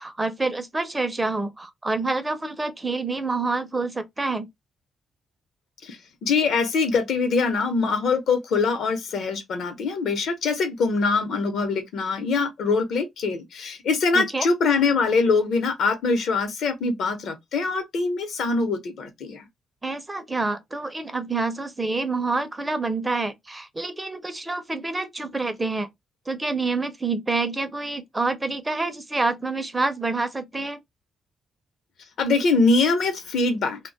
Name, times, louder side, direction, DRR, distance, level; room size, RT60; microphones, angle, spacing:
voice 1, 0.0-4.5 14.1-14.5 19.8-25.9 26.3-30.8, right 3 dB, 15° right, 0.4 m, -27 dB
voice 2, 5.8-19.5 32.2-33.8, left 4 dB, 70° left, 0.7 m, -23 dB
2.2 x 2.0 x 3.8 m
cardioid pair, 105°, 0 cm